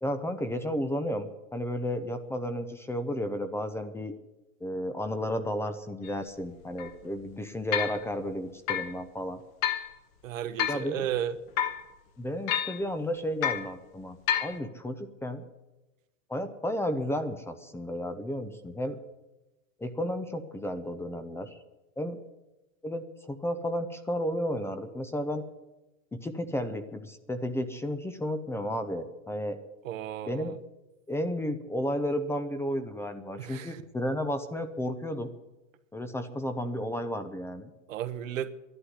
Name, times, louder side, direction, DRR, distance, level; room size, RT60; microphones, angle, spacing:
voice 1, 0.0-1.3 1.5-4.1 4.6-9.4 10.7-11.1 12.2-15.5 16.3-19.0 19.8-21.6 22.0-22.2 22.8-25.4 26.1-29.6 30.3-30.6 31.1-35.3 35.9-37.7, equal, 5° left, 9 dB, 0.7 m, -33 dB
sound 1, 6.0-6.1 6.8-6.9 7.7-8.0 8.7-8.9 9.6-9.9 10.6-10.9 11.6-11.8 12.5-12.8 13.4-13.7 14.3-14.6, left 10 dB, 40° left, 1.3 m, -29 dB
voice 2, 10.2-11.3 29.8-30.5 33.4-33.8 37.9-38.5, right 10 dB, 70° right, 10 dB, 1.2 m, -34 dB
11.5 x 11.5 x 9.9 m, 1.0 s
hypercardioid pair, 125°, 40 cm